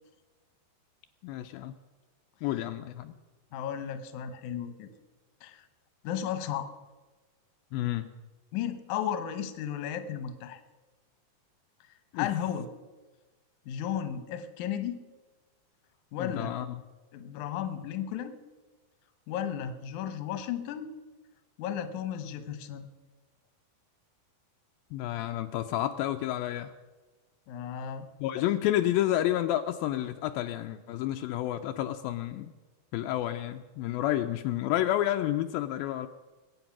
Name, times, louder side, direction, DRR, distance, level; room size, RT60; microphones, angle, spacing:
voice 1, 1.2-1.7 2.4-3.1 7.7-8.1 12.1-12.3 16.2-16.8 24.9-26.7 28.2-32.5 32.9-36.1, left 13 dB, 85° left, 6 dB, 2.0 m, -30 dB
voice 2, 3.5-4.9 5.4-5.6 6.0-6.7 8.5-10.6 12.1-12.7 13.7-15.0 16.1-16.6 17.1-18.4 19.3-20.9 21.6-22.9 27.5-28.1, left 9 dB, 70° left, 9 dB, 1.9 m, -34 dB
21.5 x 8.7 x 6.0 m, 1.2 s
omnidirectional pair, 4.7 m